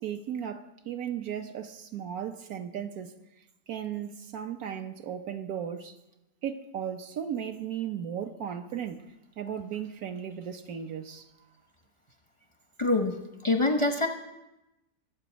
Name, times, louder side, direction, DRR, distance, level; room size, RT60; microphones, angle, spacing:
voice 1, 0.0-3.1 3.7-5.9 6.4-9.0 9.4-11.3, right 9 dB, 65° right, 1.2 m, -36 dB
voice 2, 12.8-13.2 13.4-14.1, left 2 dB, 30° left, 0.5 m, -24 dB
23.0 x 7.8 x 5.1 m
omnidirectional pair, 1.8 m